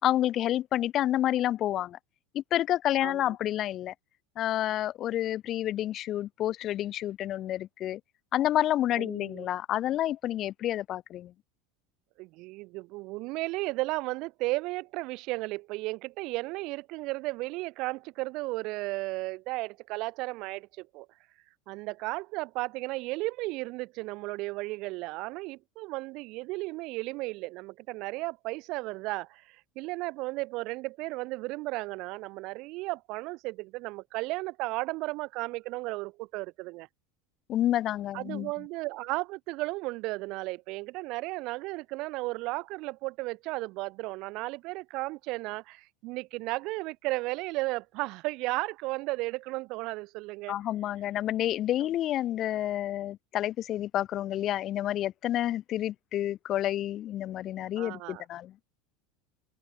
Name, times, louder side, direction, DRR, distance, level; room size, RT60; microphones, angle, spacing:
voice 1, 0.0-2.0 2.3-3.9 4.3-8.0 8.3-11.3 37.5-38.5 50.5-58.5, left 12 dB, 45° left, 1.6 m, -29 dB
voice 2, 9.0-9.5 12.2-21.1 21.7-36.9 38.1-50.6 57.8-58.2, right 22 dB, 60° right, 3.0 m, -34 dB
hypercardioid pair, 95°, 0 cm